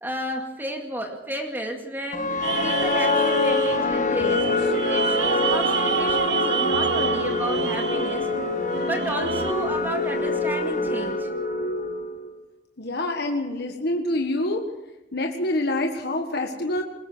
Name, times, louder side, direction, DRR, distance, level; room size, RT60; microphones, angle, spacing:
voice 1, 0.0-4.5 4.9-8.3 8.8-11.3, right 1 dB, 10° right, 3 dB, 2.2 m, -32 dB
sound 1, 2.1-12.3, left 3 dB, 45° left, 1.6 m, -25 dB
sound 2, 2.4-9.5, right 6 dB, 75° right, 1.2 m, -28 dB
voice 2, 12.8-14.6 15.1-16.8, left 1 dB, 65° left, 3 dB, 1.6 m, -26 dB
22.0 x 19.5 x 6.2 m, 1.0 s
head